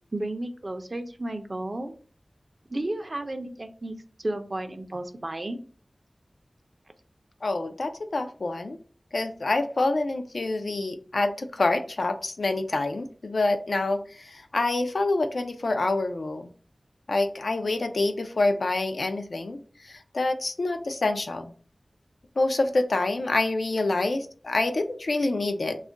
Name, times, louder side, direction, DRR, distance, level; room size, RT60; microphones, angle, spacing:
voice 1, 0.1-1.9 2.7-4.0 4.2-5.6, right 1 dB, 45° right, 6 dB, 0.5 m, -32 dB
voice 2, 7.4-8.8 9.1-16.5 17.1-19.6 19.9-21.5 22.4-25.8, left 2 dB, 80° left, 7 dB, 0.3 m, -27 dB
2.3 x 2.1 x 3.7 m, 0.41 s
wide cardioid pair, 55°, 0 cm